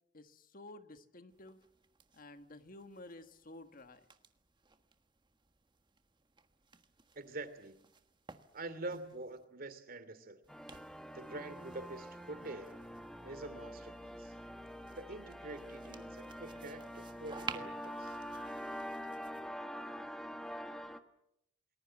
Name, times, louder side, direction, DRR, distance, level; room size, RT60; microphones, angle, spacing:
voice 1, 0.1-1.6 2.1-4.1, left 2 dB, 50° left, 9 dB, 1.4 m, -52 dB
sound 1, 1.3-9.4 10.4-19.5, right 4 dB, 25° right, 1.4 m, -54 dB
voice 2, 7.1-7.8 8.5-10.4 11.1-12.8 13.2-14.4 14.9-18.2, right 2 dB, 50° right, 12 dB, 2.6 m, -46 dB
sound 2, 10.5-21.0, equal, 5° left, 1.3 m, -45 dB
29.0 x 20.5 x 7.6 m, 0.79 s
head